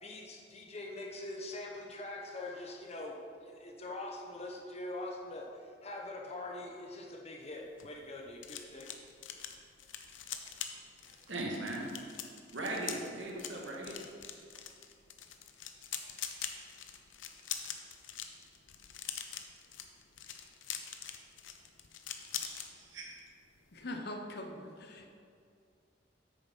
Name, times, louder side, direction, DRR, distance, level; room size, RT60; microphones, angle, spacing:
voice 1, 0.0-5.4 5.8-8.9, left 2 dB, 35° left, 0 dB, 1.2 m, -43 dB
sound 1, 7.5-22.7 23.0-23.3 23.5-23.8, left 9 dB, 90° left, 0.7 m, -44 dB
voice 2, 11.1-11.8 12.5-14.0 22.5-23.1, right 2 dB, 75° right, -3 dB, 2.1 m, -39 dB
voice 3, 23.7-25.1, left 1 dB, 55° left, 4 dB, 0.9 m, -42 dB
8.6 x 6.7 x 5.5 m, 2.3 s
head